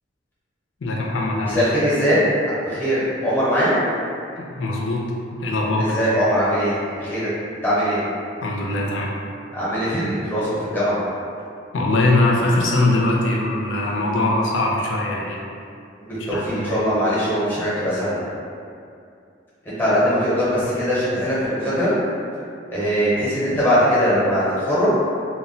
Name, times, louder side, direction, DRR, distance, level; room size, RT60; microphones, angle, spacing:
voice 1, 0.8-1.6 4.4-5.9 8.4-9.1 11.7-15.4 16.2-16.8, left 2 dB, 85° left, -2 dB, 0.5 m, -22 dB
voice 2, 1.4-2.2 2.7-3.8 5.8-7.3 7.6-8.0 9.5-11.0 16.0-18.2 19.6-22.0 22.7-24.9, equal, 10° left, -11 dB, 0.8 m, -21 dB
2.2 x 2.1 x 3.8 m, 2.4 s
head